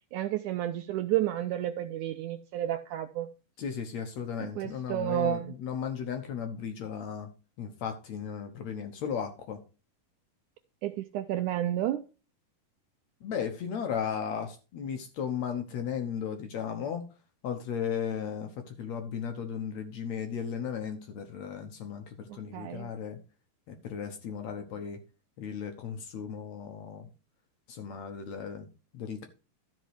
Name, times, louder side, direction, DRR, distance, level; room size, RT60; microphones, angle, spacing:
voice 1, 0.1-3.3 4.4-5.6 10.8-12.0 22.3-22.9, right 12 dB, 85° right, 8 dB, 1.8 m, -31 dB
voice 2, 3.6-7.3 7.6-9.6 13.2-17.1 17.4-23.2 23.7-25.0 25.4-27.1 27.7-28.7 28.9-29.3, left 7 dB, 65° left, 6 dB, 1.9 m, -35 dB
12.5 x 5.4 x 4.8 m, 0.33 s
omnidirectional pair, 4.1 m